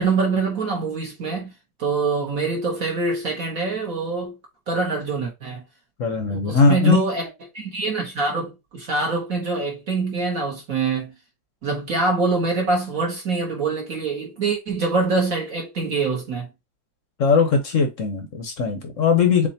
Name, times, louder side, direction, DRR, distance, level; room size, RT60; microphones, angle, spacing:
voice 1, 0.0-1.5 1.8-4.3 4.7-5.6 6.3-7.3 7.5-11.1 11.6-16.5, right 4 dB, 50° right, 1.4 m, -24 dB
voice 2, 6.0-7.0 17.2-19.5, left 5 dB, 55° left, 0.9 m, -19 dB
7.2 x 2.5 x 2.8 m
omnidirectional pair, 2.2 m